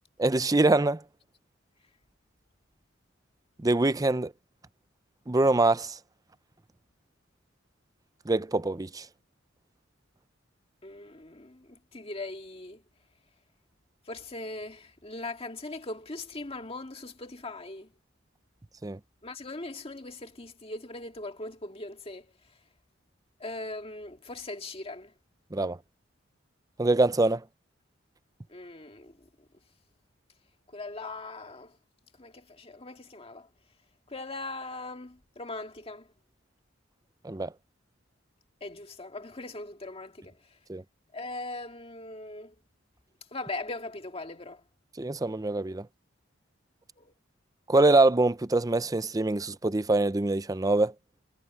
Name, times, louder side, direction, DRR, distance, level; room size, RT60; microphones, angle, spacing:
voice 1, 0.2-1.0 3.6-4.3 5.3-6.0 8.3-9.0 18.8-19.0 25.5-25.8 26.8-27.4 37.2-37.5 40.7-40.8 45.0-45.8 47.7-50.9, right 2 dB, 20° right, 0.5 m, -24 dB
voice 2, 10.8-12.8 14.1-17.9 19.2-22.3 23.4-25.1 28.5-29.1 30.7-31.8 32.2-33.5 34.1-36.1 38.6-40.3 41.1-42.5 43.3-44.6 47.0-47.1, left 2 dB, 30° left, 1.9 m, -40 dB
head